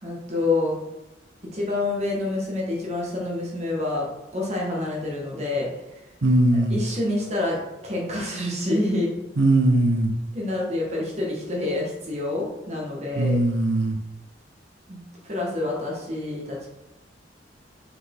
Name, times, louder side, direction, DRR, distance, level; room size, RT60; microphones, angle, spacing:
voice 1, 0.0-0.8 1.5-4.1 4.3-5.7 6.7-9.1 10.3-13.4 14.9-16.7, left 2 dB, 35° right, -3 dB, 1.6 m, -27 dB
voice 2, 6.2-6.8 9.4-10.1 13.2-14.0, right 1 dB, 75° right, 3 dB, 0.7 m, -20 dB
6.4 x 4.8 x 3.8 m, 0.97 s
head